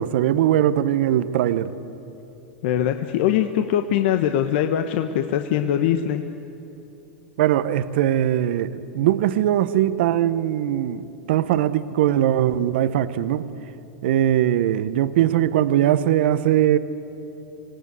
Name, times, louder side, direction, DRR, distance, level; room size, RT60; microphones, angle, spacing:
voice 1, 0.0-1.7 7.4-13.5 14.0-16.8, right 11 dB, 70° right, 13 dB, 0.9 m, -20 dB
voice 2, 2.6-6.2, left 10 dB, 65° left, 7 dB, 1.1 m, -22 dB
26.0 x 18.0 x 8.3 m, 2.9 s
hypercardioid pair, 115°, 6 cm